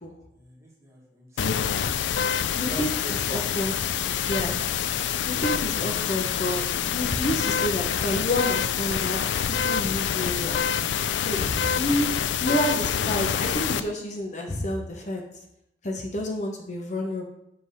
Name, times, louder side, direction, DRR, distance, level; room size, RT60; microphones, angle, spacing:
voice 1, 0.3-1.4 2.7-3.2 11.9-12.1 15.9-16.1, right 1 dB, 15° right, -3 dB, 1.5 m, -43 dB
sound 1, 1.4-13.8, left 8 dB, 85° left, 0.4 m, -26 dB
voice 2, 2.6-3.7 4.2-4.6 5.3-9.2 9.5-10.6 11.3-12.1 12.4-15.3 15.8-17.2, left 1 dB, 40° left, 1 dB, 0.8 m, -29 dB
7.7 x 3.4 x 5.6 m, 0.81 s
head